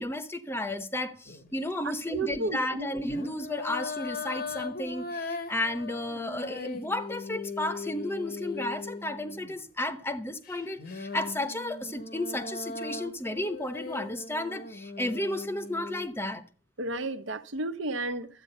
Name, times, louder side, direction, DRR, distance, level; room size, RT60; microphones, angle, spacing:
voice 1, 0.0-16.4, left 1 dB, 10° left, 0.9 m, -33 dB
sound 1, 1.3-1.6 3.0-9.6 10.4-16.1, left 3 dB, 50° left, 1.1 m, -39 dB
voice 2, 2.1-2.9 16.8-18.3, right 2 dB, 80° right, 1.2 m, -32 dB
13.0 x 8.8 x 5.5 m
head